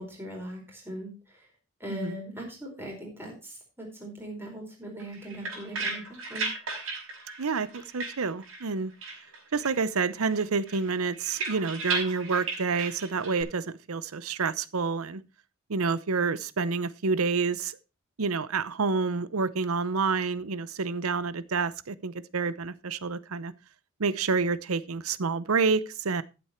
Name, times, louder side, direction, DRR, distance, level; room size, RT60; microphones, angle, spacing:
voice 1, 0.0-1.4 1.8-6.5, equal, 10° right, 4.6 m, -40 dB
sound 1, 5.0-8.7 9.0-9.9 10.2-13.4, right 3 dB, 70° right, 5.6 m, -36 dB
voice 2, 7.4-8.9 9.5-15.2 15.7-17.8 18.2-23.5 24.0-26.2, right 4 dB, 90° right, 0.8 m, -28 dB
13.5 x 7.8 x 4.4 m
head